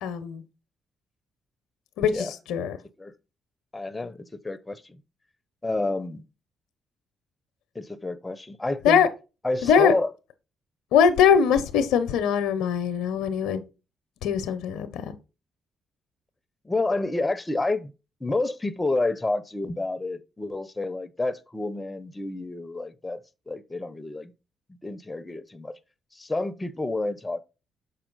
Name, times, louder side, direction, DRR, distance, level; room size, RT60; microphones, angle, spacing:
voice 1, 0.0-0.4 2.0-2.8 8.8-9.1 9.6-9.9 10.9-13.6 14.2-15.1, left 7 dB, 80° left, 0.6 m, -22 dB
voice 2, 3.7-5.0 5.6-6.2 7.7-9.0 9.4-10.1 16.6-17.9 18.2-24.3 24.7-25.8 26.1-27.4, left 2 dB, 20° left, 0.6 m, -29 dB
5.9 x 4.2 x 3.9 m
supercardioid pair, 55°, 0 cm